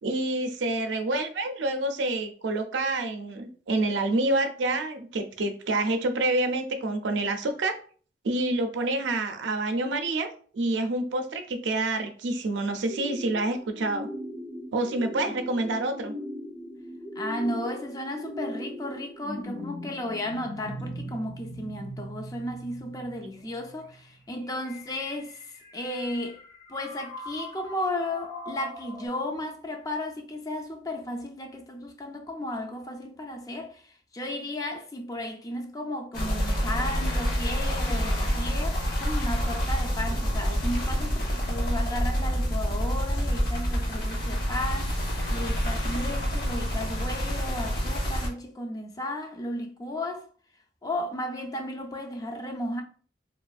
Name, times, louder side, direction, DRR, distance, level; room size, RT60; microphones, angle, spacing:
voice 1, 0.0-7.8 8.2-10.3 10.5-14.1 14.7-16.1, right 2 dB, 90° right, 0.5 m, -27 dB
sound 1, 12.9-29.1, equal, 75° left, 1.3 m, -40 dB
voice 2, 17.2-26.4 26.7-50.3 50.8-52.8, left 1 dB, 20° left, 0.4 m, -34 dB
sound 2, 36.1-48.3, equal, 55° left, 0.9 m, -27 dB
3.0 x 2.5 x 2.3 m
head